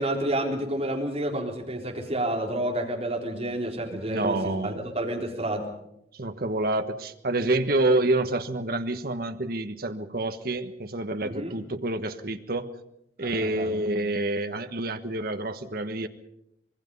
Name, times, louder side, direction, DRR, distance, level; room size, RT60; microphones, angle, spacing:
voice 1, 0.0-5.7 11.2-11.6 13.2-13.8, right 1 dB, 35° right, 0 dB, 3.8 m, -30 dB
voice 2, 3.9-4.9 6.1-12.7 13.2-16.1, right 2 dB, 55° right, 8 dB, 1.3 m, -28 dB
25.5 x 21.0 x 5.5 m, 0.79 s
head